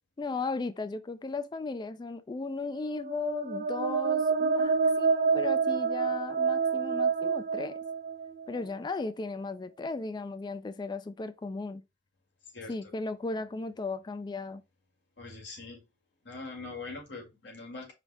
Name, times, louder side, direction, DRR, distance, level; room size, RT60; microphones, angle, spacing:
voice 1, 0.2-7.8 8.5-11.8 12.7-14.6, left 3 dB, 25° left, 0.3 m, -36 dB
sound 1, 2.8-8.6, right 5 dB, 50° right, 0.4 m, -28 dB
voice 2, 15.2-15.8 16.2-17.9, left 3 dB, 75° left, 1.8 m, -42 dB
5.0 x 2.1 x 4.6 m
head